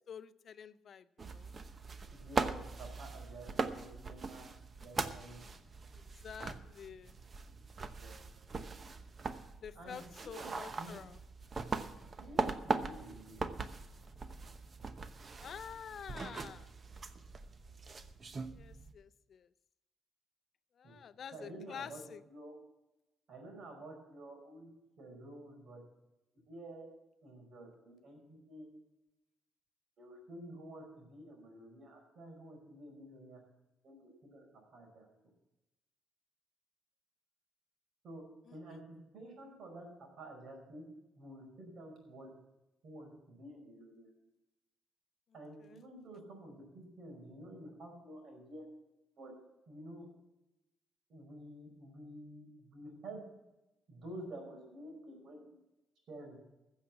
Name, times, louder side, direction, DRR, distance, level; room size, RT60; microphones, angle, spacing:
voice 1, 0.1-1.6 6.2-7.2 9.6-11.2 15.4-16.7 18.5-19.5 20.8-22.2 38.7-38.8 45.6-45.8, left 8 dB, 55° left, 13 dB, 0.5 m, -48 dB
sound 1, 1.2-18.9, right 4 dB, 40° right, 0.9 m, -41 dB
voice 2, 2.1-5.5 8.0-8.2 8.5-8.7 9.8-11.0 12.2-13.6 20.8-20.9 21.3-22.5 23.3-24.7 25.0-25.8 26.5-26.9 27.2-28.7 30.0-33.4 33.8-35.1 38.0-38.2 38.5-40.9 41.2-42.3 42.8-44.1 45.3-48.7 49.2-49.3 49.7-50.1 51.1-53.2 53.9-55.5 56.1-56.4, right 1 dB, 65° right, 2 dB, 5.2 m, -50 dB
15.0 x 7.3 x 7.2 m, 0.96 s
cardioid pair, 90°, 0 cm